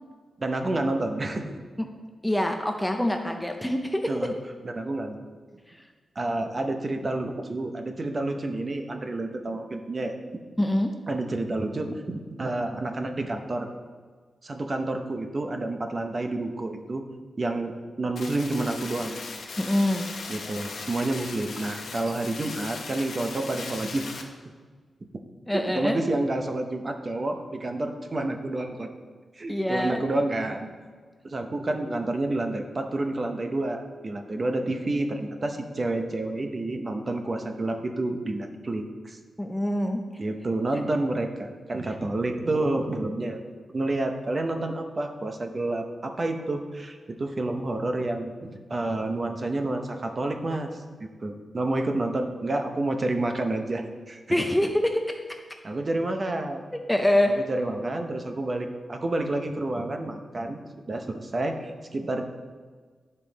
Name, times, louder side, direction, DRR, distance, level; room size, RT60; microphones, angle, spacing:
voice 1, 0.4-1.5 4.1-4.4 4.6-5.2 6.2-10.1 11.1-13.7 14.4-17.0 17.4-19.2 20.3-24.1 25.5-28.9 29.4-30.7 31.2-39.2 40.2-43.4 43.7-48.3 48.7-50.8 51.2-54.2 55.6-56.6 57.3-60.6 60.9-62.2, right 2 dB, 30° right, 5 dB, 0.7 m, -29 dB
voice 2, 2.2-4.3 10.6-10.9 19.6-20.1 25.5-26.0 29.5-30.0 39.4-40.0 54.3-55.2 56.9-57.3, left 1 dB, 5° left, 4 dB, 0.5 m, -25 dB
sound 1, 18.2-24.2, left 4 dB, 75° left, 1.0 m, -38 dB
10.5 x 5.4 x 4.0 m, 1.5 s
wide cardioid pair, 150°, 0 cm